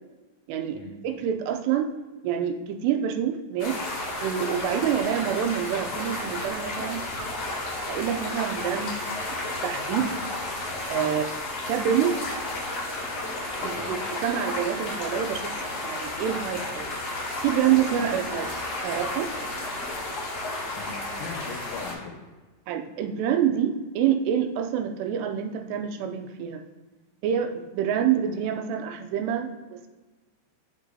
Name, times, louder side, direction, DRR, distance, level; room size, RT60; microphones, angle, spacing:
voice 1, 0.5-1.9 2.2-3.8 4.2-7.0 7.8-9.0 9.6-10.1 10.9-11.3 11.7-12.2 13.6-15.5 15.8-17.0 17.4-18.5 18.8-19.3 22.7-26.6 27.2-29.9, right 9 dB, 85° right, 6 dB, 2.7 m, -27 dB
sound 1, 3.6-21.9, left 2 dB, 45° left, 2.8 m, -32 dB
voice 2, 20.8-22.1, left 5 dB, 80° left, 0 dB, 2.9 m, -40 dB
8.1 x 8.1 x 2.7 m, 1.2 s
omnidirectional pair, 4.9 m